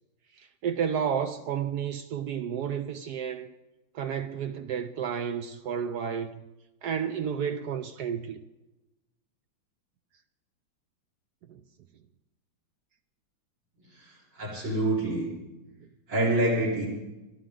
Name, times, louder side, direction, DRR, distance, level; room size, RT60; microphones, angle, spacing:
voice 1, 0.3-3.5 3.9-6.4 6.8-8.4 11.5-11.6 15.8-15.9, right 8 dB, 70° right, 1.1 m, -31 dB
voice 2, 13.9-15.3 16.1-16.9, right 1 dB, 85° right, 5.4 m, -27 dB
29.0 x 11.0 x 3.8 m
omnidirectional pair, 2.1 m